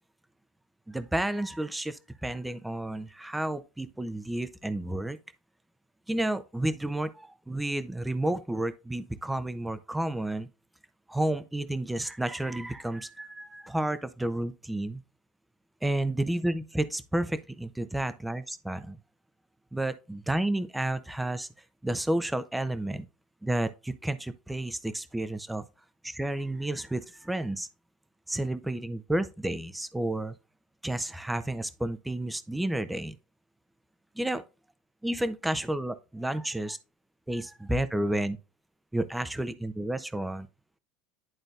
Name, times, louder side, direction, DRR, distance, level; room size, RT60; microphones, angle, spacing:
voice 1, 0.9-5.2 6.1-10.5 11.1-15.0 15.8-19.0 19.7-21.5 21.8-23.0 23.4-25.6 26.0-27.7 28.3-30.4 30.8-33.2 34.2-34.4 35.0-36.8 37.3-38.4 38.9-40.5, right 1 dB, 5° right, 0.7 m, -31 dB
11.5 x 3.9 x 2.5 m
supercardioid pair, 95°, 0 cm